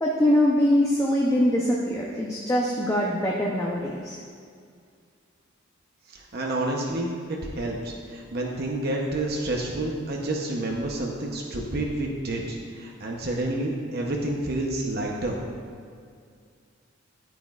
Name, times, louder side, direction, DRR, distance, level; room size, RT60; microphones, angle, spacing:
voice 1, 0.0-4.2, left 1 dB, 15° left, -3 dB, 0.6 m, -23 dB
voice 2, 6.1-7.1 7.4-15.4, right 1 dB, 50° right, -1 dB, 0.8 m, -29 dB
9.7 x 9.2 x 2.4 m, 2.2 s
head